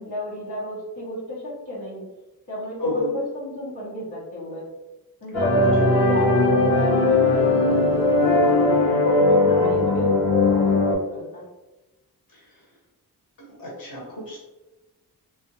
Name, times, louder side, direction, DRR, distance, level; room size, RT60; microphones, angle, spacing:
voice 1, 0.0-2.0 2.5-4.7 5.2-6.3 6.6-8.8 9.3-11.4, equal, 80° left, -8 dB, 1.3 m, -33 dB
voice 2, 2.8-3.1 5.5-6.0 9.6-9.9 12.3-12.6 13.4-14.4, left 1 dB, 60° left, -4 dB, 1.4 m, -31 dB
sound 1, 5.3-10.9, left 2 dB, 45° left, 0.9 m, -19 dB
3.5 x 2.5 x 2.9 m, 1.1 s
cardioid pair, 80°, 38 cm